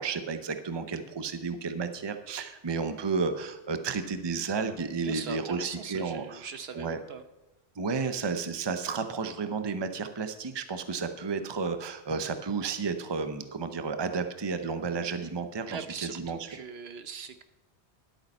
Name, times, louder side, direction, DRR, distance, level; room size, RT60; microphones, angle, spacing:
voice 1, 0.0-6.5 6.7-7.0 7.8-16.5, right 5 dB, 25° right, 9 dB, 0.7 m, -32 dB
voice 2, 5.0-7.2 15.7-17.4, right 6 dB, 70° right, 10 dB, 1.1 m, -40 dB
11.0 x 8.7 x 5.4 m, 1.0 s
omnidirectional pair, 1.1 m